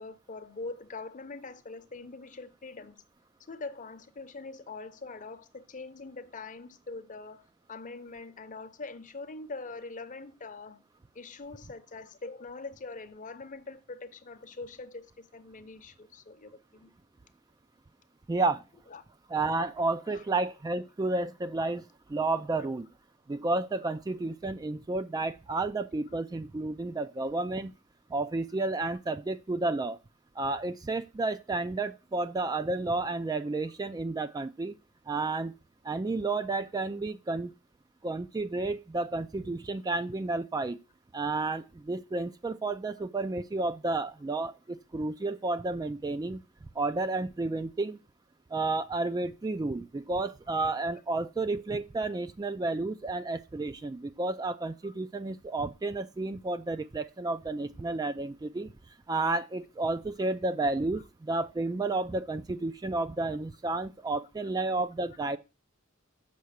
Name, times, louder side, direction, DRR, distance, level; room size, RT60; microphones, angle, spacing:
voice 1, 0.0-3.0 3.5-10.8 11.1-16.9 18.9-19.0 20.1-20.2 54.8-54.9, left 3 dB, 40° left, 0.8 m, -43 dB
voice 2, 18.3-18.6 19.3-22.9 23.3-27.7 28.1-30.0 30.4-34.7 35.1-35.5 35.8-37.5 38.0-40.8 41.1-46.4 46.8-48.0 48.5-58.7 59.1-65.4, right 3 dB, 20° right, 0.3 m, -31 dB
6.9 x 5.6 x 6.4 m
head